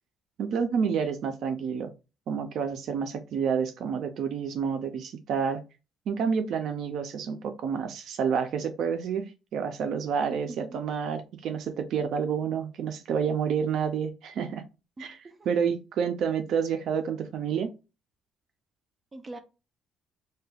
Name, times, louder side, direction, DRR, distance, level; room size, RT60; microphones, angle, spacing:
voice 1, 0.4-1.9 2.3-5.6 6.1-14.6 15.0-15.2 15.5-17.7, right 6 dB, 70° right, 0.4 m, -29 dB
voice 2, 10.3-10.8 15.0-15.5 19.1-19.4, right 2 dB, 25° right, 0.6 m, -43 dB
2.7 x 2.2 x 3.3 m
cardioid pair, 100°, 0 cm